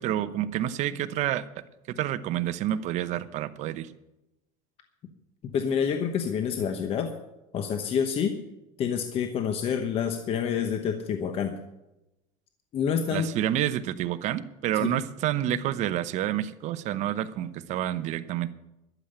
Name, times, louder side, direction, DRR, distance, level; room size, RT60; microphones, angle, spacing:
voice 1, 0.0-1.4 1.9-3.9 13.1-18.5, right 12 dB, 45° right, 12 dB, 0.9 m, -28 dB
voice 2, 5.4-7.1 7.5-8.4 8.8-11.5 12.7-13.3 14.8-15.0, left 7 dB, 35° left, 7 dB, 1.1 m, -27 dB
12.0 x 7.4 x 10.0 m, 0.93 s
supercardioid pair, 140°, 16 cm